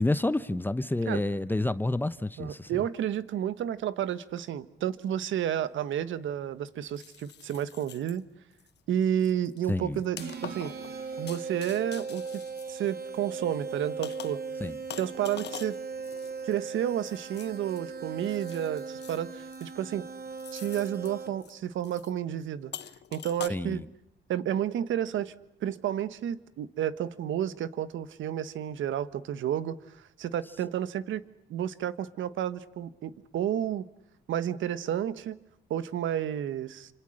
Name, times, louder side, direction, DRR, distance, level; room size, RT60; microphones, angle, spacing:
voice 1, 0.0-2.7 9.7-10.0 14.6-14.8 23.5-23.8, left 2 dB, 10° left, 0.9 m, -29 dB
voice 2, 2.4-8.3 8.9-10.7 11.2-14.4 15.0-15.8 16.4-20.1 20.5-22.7 23.1-23.8 24.3-25.3 25.6-29.8 30.2-31.2 31.5-33.9 34.3-35.4 35.7-36.9, right 10 dB, 75° right, 1.4 m, -31 dB
sound 1, 5.4-5.5 6.9-8.2 8.6-8.8 9.2-13.3 14.0-14.5 14.9-17.8 18.2-19.2 19.5-19.9 20.4-21.1 21.4-21.5 21.8-22.1 22.7-23.5, left 10 dB, 60° left, 1.0 m, -45 dB
sound 2, 10.2-21.6, right 5 dB, 55° right, 2.9 m, -39 dB
29.0 x 26.5 x 6.5 m
cardioid pair, 90°, 20 cm